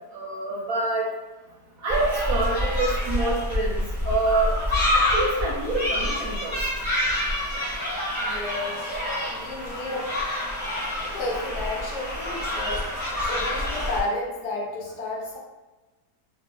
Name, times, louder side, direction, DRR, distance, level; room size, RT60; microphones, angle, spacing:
voice 1, 0.1-1.1 1.8-4.5 4.9-6.6, right 2 dB, 65° right, -5 dB, 0.9 m, -26 dB
sound 1, 1.9-14.0, left 1 dB, 15° left, 0.9 m, -27 dB
voice 2, 8.2-8.9 9.1-10.1 11.1-12.8 13.3-15.4, left 2 dB, 75° left, -2 dB, 1.2 m, -32 dB
2.8 x 2.5 x 2.3 m, 1.2 s
omnidirectional pair, 1.8 m